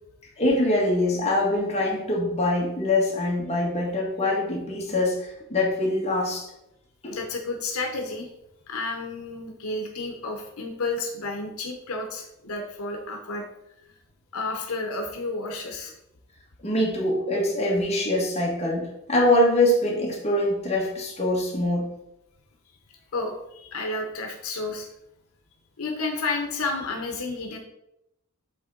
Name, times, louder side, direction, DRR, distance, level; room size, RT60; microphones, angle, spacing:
voice 1, 0.4-6.5 7.0-7.1 16.6-21.9, left 1 dB, 30° left, -3 dB, 1.5 m, -24 dB
voice 2, 7.1-8.3 8.7-13.4 14.3-15.9 18.6-18.7 23.1-24.9 25.8-27.6, left 3 dB, 80° left, 3 dB, 0.8 m, -31 dB
8.1 x 3.6 x 3.7 m, 0.83 s
head